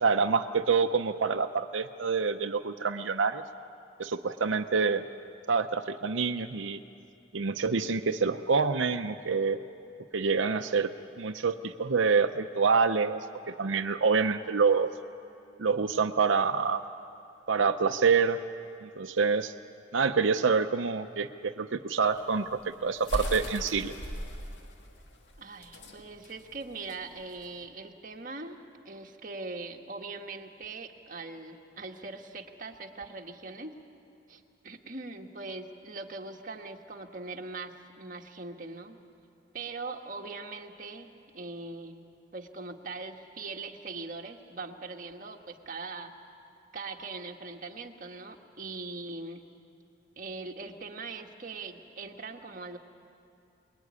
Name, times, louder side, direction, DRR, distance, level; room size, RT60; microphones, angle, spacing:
voice 1, 0.0-3.4 4.0-5.0 5.5-6.8 7.3-9.6 10.1-14.9 15.6-16.8 17.5-18.4 18.8-19.5 19.9-23.9, right 5 dB, 85° right, 7 dB, 0.7 m, -27 dB
sound 1, 22.0-27.6, equal, 70° left, 2.4 m, -38 dB
voice 2, 25.4-33.7 34.3-39.0 39.5-42.0 42.3-46.1 46.7-49.5 50.2-52.8, right 3 dB, 45° right, 2 dB, 1.6 m, -41 dB
24.5 x 21.5 x 9.7 m, 2.6 s
head